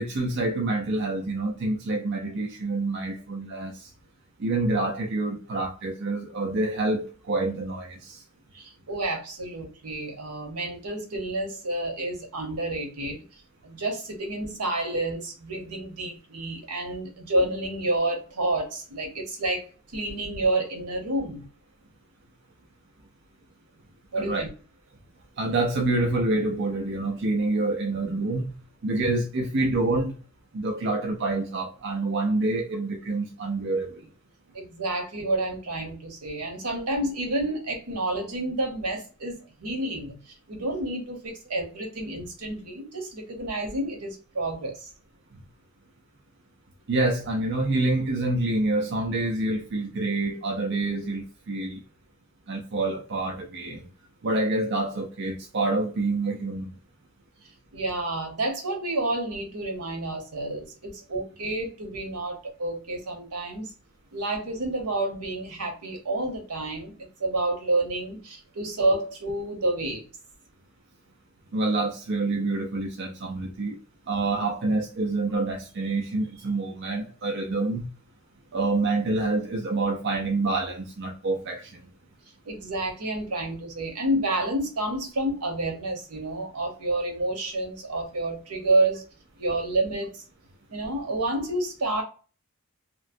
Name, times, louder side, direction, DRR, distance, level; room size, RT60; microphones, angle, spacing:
voice 1, 0.0-3.9 4.4-8.2 24.2-24.4 25.4-28.5 28.8-30.2 30.5-34.0 46.9-51.8 52.5-53.8 54.2-56.7 71.5-73.8 74.1-77.9 78.5-81.8, right 2 dB, 50° right, 0.4 m, -27 dB
voice 2, 8.5-13.2 13.6-19.6 19.9-21.4 24.1-24.5 34.5-44.9 57.7-63.7 64.1-70.0 82.4-89.0 89.4-90.2 90.7-92.0, right 2 dB, 85° right, 1.0 m, -29 dB
3.0 x 2.1 x 2.5 m
head